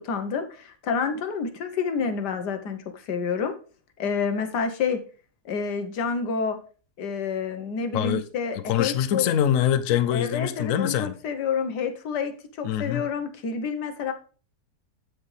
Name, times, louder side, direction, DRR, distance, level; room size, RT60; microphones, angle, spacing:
voice 1, 0.0-3.5 4.0-5.0 5.4-6.6 7.0-9.3 10.1-14.1, left 5 dB, 85° left, 1.6 m, -28 dB
voice 2, 7.9-8.2 8.7-11.1 12.6-13.0, left 10 dB, 65° left, 0.9 m, -24 dB
15.0 x 5.0 x 3.3 m
omnidirectional pair, 1.7 m